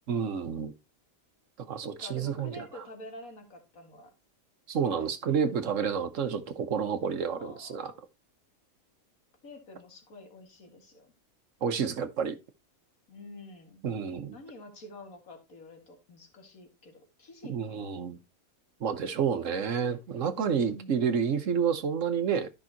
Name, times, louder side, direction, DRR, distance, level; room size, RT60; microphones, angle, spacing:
voice 1, 0.1-0.7 1.7-2.6 4.7-7.9 11.6-12.4 13.8-14.3 17.5-18.2 18.8-22.5, right 7 dB, 65° right, 1.3 m, -29 dB
voice 2, 2.0-4.1 5.0-5.2 7.4-8.0 9.4-11.1 13.1-13.8 14.3-17.9 20.3-21.0, left 2 dB, 80° left, 2.4 m, -48 dB
13.0 x 5.5 x 2.9 m
omnidirectional pair, 1.5 m